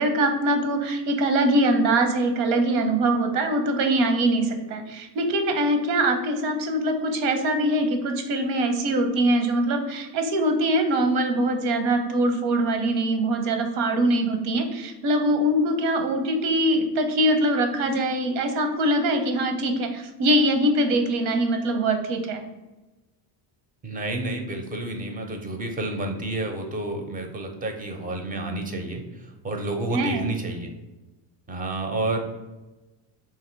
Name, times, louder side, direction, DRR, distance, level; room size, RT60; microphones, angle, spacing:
voice 1, 0.0-22.4 29.9-30.3, right 1 dB, 85° right, 6 dB, 0.8 m, -23 dB
voice 2, 23.8-29.0 29.4-30.7 31.5-32.2, right 2 dB, 20° right, 4 dB, 0.4 m, -30 dB
2.8 x 2.8 x 4.4 m, 1.1 s
cardioid pair, 120°, 49 cm